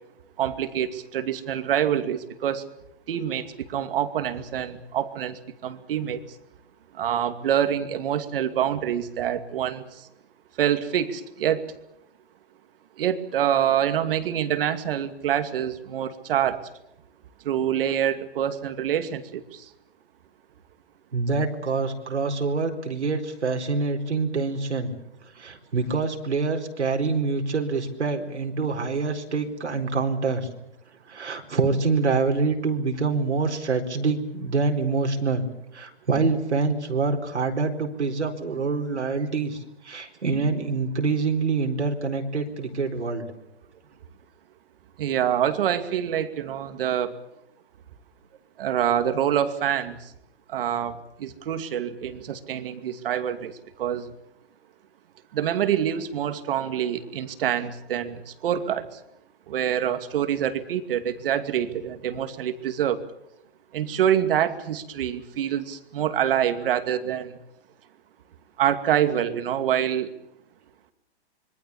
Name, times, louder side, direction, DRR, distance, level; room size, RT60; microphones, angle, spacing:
voice 1, 0.4-2.6 3.1-6.2 7.0-9.8 10.6-11.6 13.0-16.6 17.4-19.4 45.0-47.1 48.6-50.0 50.5-53.5 53.8-54.1 55.3-58.8 59.5-63.0 63.7-67.4 68.6-70.1, right 10 dB, 55° right, 9 dB, 2.5 m, -26 dB
voice 2, 21.1-24.9 25.4-30.5 31.1-35.4 35.7-43.3, right 4 dB, 90° right, 3 dB, 4.4 m, -26 dB
26.0 x 23.5 x 7.2 m, 0.79 s
hypercardioid pair, 140°, 33 cm